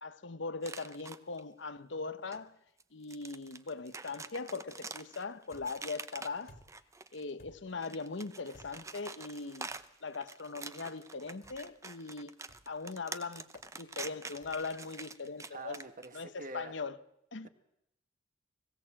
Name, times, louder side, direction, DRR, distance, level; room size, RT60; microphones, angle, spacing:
voice 1, 0.0-2.6 2.9-6.6 7.1-9.7 10.0-12.3 12.7-13.5 13.7-15.8 16.1-17.0 17.3-17.5, left 4 dB, 70° left, 1.0 m, -40 dB
sound 1, 0.6-1.4 2.3-2.4 2.8-7.3 7.7-16.2, right 4 dB, 15° right, 0.7 m, -46 dB
sound 2, 5.5-5.9 6.5-6.9 7.4-7.8 8.5-9.0 9.7-9.9 11.4-11.8 12.5-12.8 13.5-13.7 14.4-14.8, left 1 dB, 55° left, 2.4 m, -58 dB
voice 2, 15.5-16.7, right 2 dB, 45° right, 1.6 m, -45 dB
21.5 x 16.5 x 7.6 m
head